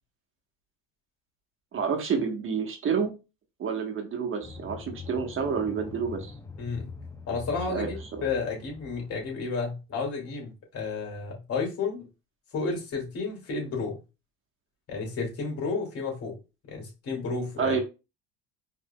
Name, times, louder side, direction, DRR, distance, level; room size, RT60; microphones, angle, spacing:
voice 1, 1.7-3.1 3.6-6.3 7.7-7.9 8.2-8.3 17.6-17.8, right 6 dB, 45° right, 4 dB, 1.2 m, -29 dB
sound 1, 4.4-9.4, left 3 dB, 10° left, 0.7 m, -43 dB
voice 2, 6.6-6.9 7.3-12.0 12.5-13.9 14.9-16.4 16.7-17.8, left 4 dB, 55° left, 0 dB, 2.3 m, -32 dB
4.8 x 3.2 x 2.2 m, 0.28 s
supercardioid pair, 90°, 29 cm